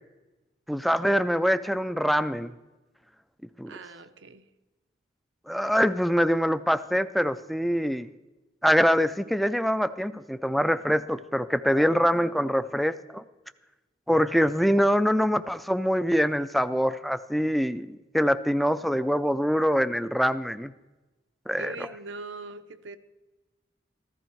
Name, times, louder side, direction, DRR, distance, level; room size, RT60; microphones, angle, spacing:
voice 1, 0.7-2.5 3.6-3.7 5.5-8.1 8.6-13.2 14.1-17.9 18.1-20.7 21.5-21.7, equal, ahead, 0.3 m, -24 dB
voice 2, 3.7-4.4 21.5-23.0, right 3 dB, 90° right, 0.8 m, -41 dB
14.5 x 13.5 x 4.6 m
head